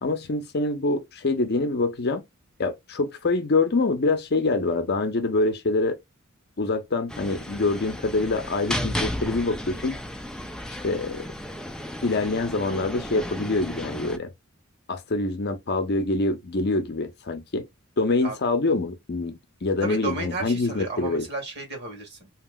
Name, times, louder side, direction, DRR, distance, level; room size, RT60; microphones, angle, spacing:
voice 1, 0.0-2.2 2.6-6.0 6.6-10.0 10.8-11.2 12.0-14.3 14.9-17.7 18.0-21.3, left 3 dB, 50° left, 0.6 m, -25 dB
sound 1, 7.1-14.2, equal, 5° left, 0.3 m, -34 dB
voice 2, 19.8-22.3, right 3 dB, 50° right, 1.5 m, -33 dB
2.9 x 2.9 x 2.2 m
head